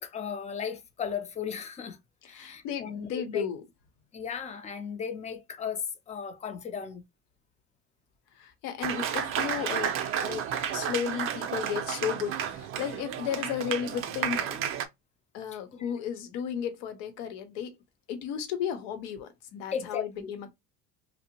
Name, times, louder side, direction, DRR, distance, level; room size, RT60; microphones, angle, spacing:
voice 1, 0.0-2.0 2.3-3.4 4.1-7.0 15.7-15.9 19.7-20.3, left 7 dB, 20° left, 0.5 m, -36 dB
voice 2, 2.2-3.6 8.3-14.6 15.3-17.8 18.1-20.5, left 8 dB, 75° left, 0.8 m, -34 dB
Applause, 8.8-14.9, right 9 dB, 45° right, 0.5 m, -32 dB
2.7 x 2.0 x 2.8 m
supercardioid pair, 115°, 31 cm